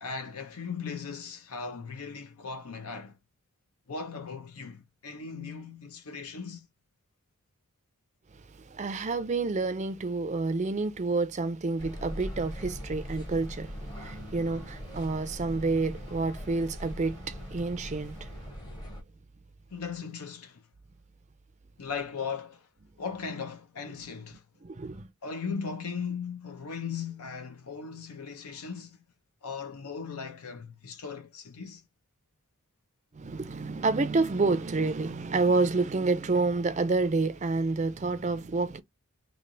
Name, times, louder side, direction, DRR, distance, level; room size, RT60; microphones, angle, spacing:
voice 1, 0.0-3.2 3.9-6.7 19.7-20.6 21.8-22.7 23.0-24.4 25.2-29.0 29.4-31.8, left 5 dB, 80° left, 0.7 m, -38 dB
voice 2, 8.6-18.4 24.6-25.1 33.1-38.8, right 3 dB, 30° right, 0.4 m, -29 dB
sound 1, 11.8-19.0, equal, 20° left, 0.8 m, -41 dB
3.2 x 2.5 x 3.8 m
head